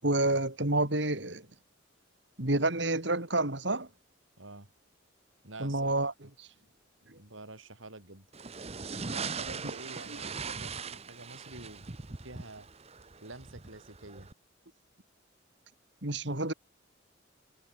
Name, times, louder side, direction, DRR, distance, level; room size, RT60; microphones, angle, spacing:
voice 1, 0.0-1.5 2.4-3.9 5.6-6.1 6.4-6.5 7.1-7.2 10.1-10.2 16.0-16.5, right 2 dB, 60° right, 3.4 m, -29 dB
voice 2, 4.4-4.7 5.4-6.0 7.2-8.3 9.1-12.7 13.2-14.3, right 2 dB, 80° right, 5.5 m, -48 dB
sound 1, 8.3-14.3, right 5 dB, 30° right, 0.9 m, -40 dB
head